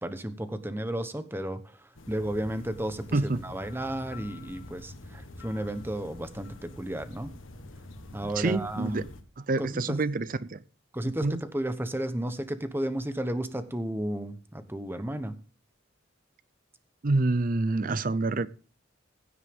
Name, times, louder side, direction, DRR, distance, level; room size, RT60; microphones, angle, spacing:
voice 1, 0.0-7.3 8.1-9.1 9.6-10.0 10.9-15.3, right 1 dB, 10° right, 1.0 m, -33 dB
sound 1, 2.0-9.2, left 2 dB, 90° left, 1.5 m, -46 dB
voice 2, 3.1-3.4 8.2-9.1 9.4-10.6 11.0-11.4 17.0-18.5, right 3 dB, 45° right, 0.6 m, -27 dB
16.0 x 8.1 x 3.6 m
head